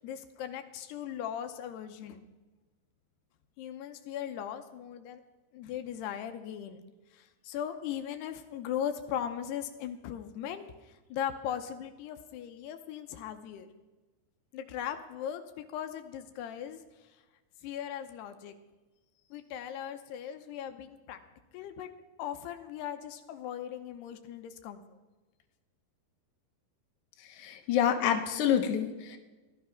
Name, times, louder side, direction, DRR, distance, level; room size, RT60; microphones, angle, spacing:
voice 1, 0.0-2.3 3.6-5.2 5.5-6.8 7.1-10.7 11.1-13.7 14.5-16.8 17.6-18.5 19.3-21.2 21.5-21.9 22.2-24.8, left 9 dB, 80° left, 7 dB, 2.8 m, -38 dB
voice 2, 27.4-29.2, left 9 dB, 65° left, 4 dB, 2.0 m, -27 dB
16.0 x 12.0 x 5.7 m, 1.2 s
omnidirectional pair, 4.8 m